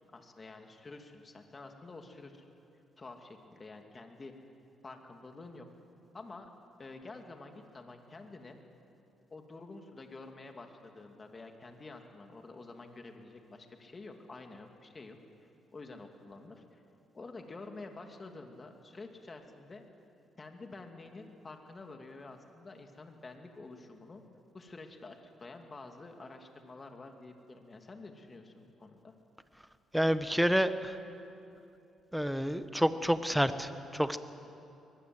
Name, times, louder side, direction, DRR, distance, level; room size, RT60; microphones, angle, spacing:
voice 1, 0.1-2.4 3.0-4.3 4.8-5.7 6.1-6.5 6.8-8.6 9.3-15.2 15.7-16.8 17.1-19.8 20.4-24.2 24.5-29.1, left 3 dB, 30° left, 4 dB, 2.6 m, -49 dB
voice 2, 29.9-31.0 32.1-34.2, equal, ahead, 11 dB, 1.2 m, -29 dB
24.5 x 20.0 x 7.9 m, 2.7 s
cardioid pair, 90°, 0 cm